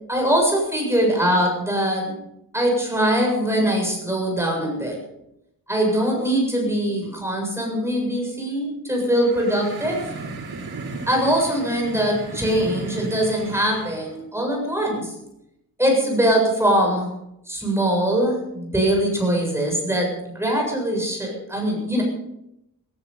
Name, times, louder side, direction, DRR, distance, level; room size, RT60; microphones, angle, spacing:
voice 1, 0.1-2.2 2.5-5.0 5.7-10.0 11.1-15.1 15.8-17.1 17.5-22.0, right 1 dB, 5° right, 0 dB, 7.5 m, -22 dB
sound 1, 9.1-14.2, right 3 dB, 85° right, 7.1 m, -35 dB
16.0 x 16.0 x 5.5 m, 0.82 s
wide cardioid pair, 140°, 38 cm